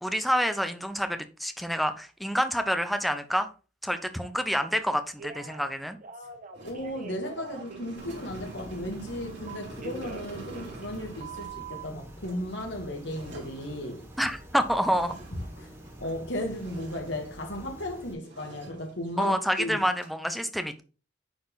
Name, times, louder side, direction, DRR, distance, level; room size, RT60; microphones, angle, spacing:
voice 1, 0.0-3.5 3.8-6.0 14.2-15.1 19.2-20.8, equal, ahead, 0.8 m, -28 dB
Telephone, 5.2-5.7 6.0-7.8 9.5-11.0 11.2-11.9, right 5 dB, 45° right, 1.2 m, -42 dB
sound 1, 6.5-16.2 16.5-17.9 18.2-19.6 19.9-20.2, right 1 dB, 70° right, 3.1 m, -47 dB
voice 2, 6.6-14.0 15.6-15.7 16.0-19.8, left 1 dB, 75° left, 2.3 m, -35 dB
sound 2, 8.0-18.1, right 1 dB, 15° right, 2.1 m, -47 dB
9.5 x 4.3 x 4.1 m
head